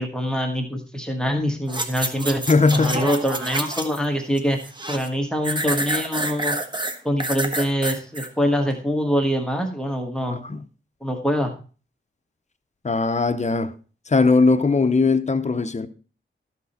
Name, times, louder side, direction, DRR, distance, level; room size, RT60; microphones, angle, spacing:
voice 1, 0.0-2.4 2.7-4.6 4.9-6.6 7.0-10.4 11.0-11.5, equal, 5° left, 1.4 m, -24 dB
sound 1, 1.7-4.1 4.4-5.1 5.4-8.3 8.8-8.9, right 1 dB, 20° right, 1.2 m, -28 dB
voice 2, 2.5-3.1 10.3-10.6 12.8-13.7 14.1-15.9, left 3 dB, 35° left, 0.7 m, -19 dB
13.0 x 6.1 x 4.2 m
wide cardioid pair, 130°, 21 cm